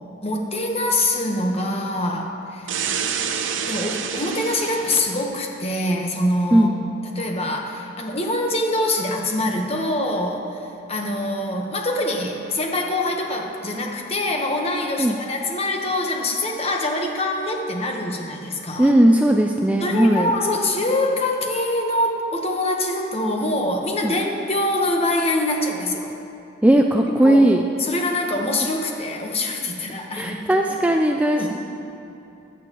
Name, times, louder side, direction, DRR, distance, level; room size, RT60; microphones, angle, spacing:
voice 1, 0.2-2.7 3.7-6.8 7.0-18.9 19.8-26.1 27.2-27.4 27.8-30.7 31.3-31.5, left 1 dB, 30° left, 1 dB, 1.1 m, -24 dB
sound 1, 2.7-5.2, right 7 dB, 75° right, 0.7 m, -27 dB
voice 2, 6.5-6.9 15.0-15.2 18.8-20.3 24.0-24.1 26.6-27.7 30.1-31.5, right 1 dB, 5° right, 2 dB, 0.3 m, -17 dB
16.0 x 11.0 x 3.0 m, 2.8 s
head